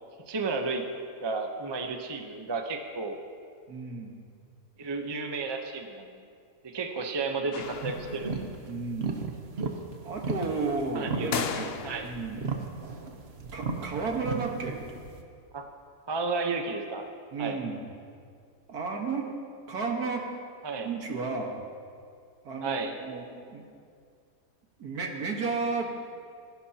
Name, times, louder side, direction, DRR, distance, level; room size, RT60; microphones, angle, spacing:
voice 1, 0.3-0.8 1.2-3.2 4.8-6.1 6.6-8.4 10.9-11.6 11.8-12.1 15.5-15.6 16.1-17.0 17.4-17.6 20.6-20.9 22.6-22.9, right 3 dB, 20° right, 4 dB, 0.7 m, -32 dB
voice 2, 3.7-4.2 8.7-9.3 10.0-11.7 12.0-12.4 13.5-14.8 17.3-17.8 18.7-19.3 19.7-20.3 20.8-21.6 22.4-23.2 23.5-23.7 24.8-25.9, right 4 dB, 65° right, 2 dB, 2.0 m, -32 dB
sound 1, 7.5-8.5 11.3-12.3, left 7 dB, 65° left, 0.6 m, -35 dB
sound 2, 7.6-15.2, right 4 dB, 45° right, 1.1 m, -36 dB
30.0 x 11.5 x 2.9 m, 2.3 s
omnidirectional pair, 1.7 m